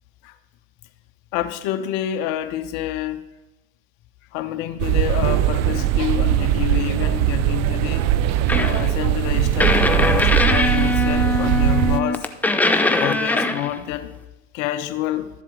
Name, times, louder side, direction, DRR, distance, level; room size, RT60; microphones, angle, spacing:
voice 1, 1.3-3.2 4.3-8.1 8.5-12.3 12.7-14.1 14.5-15.3, left 12 dB, 55° left, 8 dB, 1.0 m, -28 dB
sound 1, 4.8-12.0, right 12 dB, 45° right, 0.6 m, -20 dB
sound 2, 8.5-8.9 9.6-13.8, left 2 dB, 5° left, 0.6 m, -21 dB
12.5 x 7.4 x 3.9 m, 0.99 s
hypercardioid pair, 95°, 38 cm